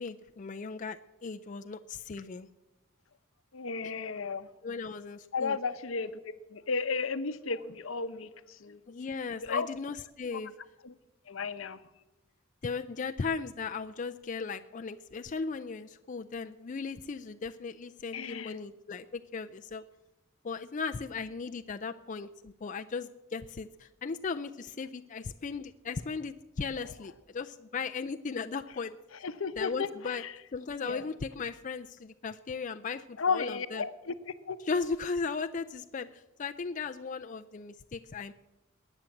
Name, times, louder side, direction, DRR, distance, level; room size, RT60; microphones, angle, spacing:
voice 1, 0.0-2.5 4.6-5.6 8.9-10.5 12.6-19.8 20.4-29.0 29.6-30.2 30.5-33.9 34.7-38.3, left 4 dB, 40° left, 7 dB, 0.4 m, -37 dB
voice 2, 3.5-4.5 5.3-8.8 9.4-9.7 10.8-10.9 11.3-11.8 18.1-18.5 29.2-30.3 30.8-31.1 33.2-34.6, left 4 dB, 80° left, 12 dB, 0.8 m, -34 dB
20.5 x 9.0 x 7.2 m, 0.99 s
head